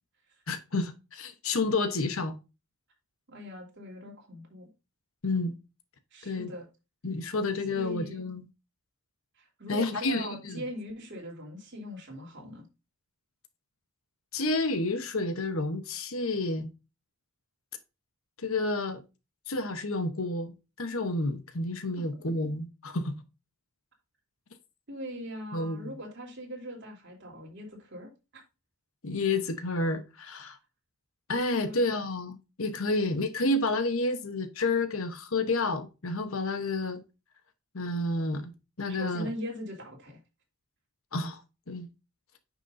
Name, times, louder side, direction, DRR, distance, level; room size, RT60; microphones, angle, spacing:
voice 1, 0.5-2.3 5.2-5.5 6.2-6.5 7.0-8.4 9.7-10.6 14.3-16.7 18.4-19.0 19.5-23.1 25.5-25.9 29.0-30.6 31.3-37.0 37.7-38.5 38.8-39.3 41.1-41.4 41.7-41.9, left 2 dB, 70° left, 1.0 m, -30 dB
voice 2, 3.3-4.7 6.1-6.6 7.7-8.2 9.4-12.7 24.9-28.1 31.6-31.8 32.9-33.2 39.0-40.2, equal, 50° right, 3.2 m, -40 dB
9.5 x 6.1 x 2.6 m
head